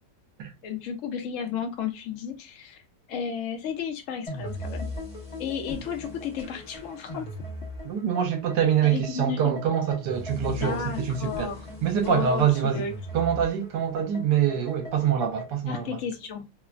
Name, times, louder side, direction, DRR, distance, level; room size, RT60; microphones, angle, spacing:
voice 1, 0.6-2.8 3.1-4.9 5.4-7.3 8.9-9.6 10.5-11.7 12.1-12.9 15.7-16.4, left 7 dB, 70° left, 0.7 m, -33 dB
sound 1, 4.3-15.6, left 1 dB, 35° left, 0.6 m, -39 dB
voice 2, 7.8-11.5 11.8-12.8 13.1-16.0, right 8 dB, 70° right, 1.2 m, -25 dB
3.1 x 2.1 x 2.4 m
omnidirectional pair, 2.0 m